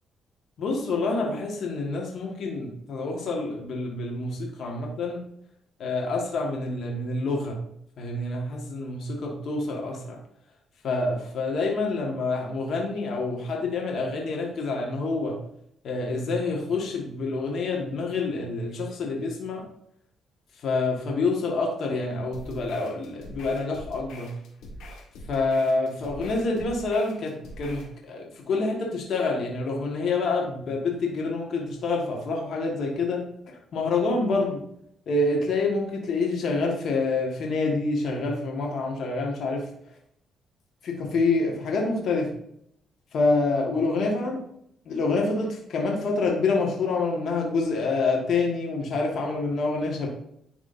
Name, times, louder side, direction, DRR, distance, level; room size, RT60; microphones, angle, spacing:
voice 1, 0.6-5.2 5.8-7.6 8.0-10.2 10.8-15.4 15.8-19.7 20.6-24.3 25.3-34.6 35.1-39.6 40.8-42.3 43.1-44.4 44.8-50.1, left 3 dB, 65° left, -1 dB, 1.5 m, -27 dB
sound 1, 22.3-27.9, equal, 85° left, 1.4 m, -43 dB
10.5 x 3.6 x 2.6 m, 0.71 s
cardioid pair, 90°, 0 cm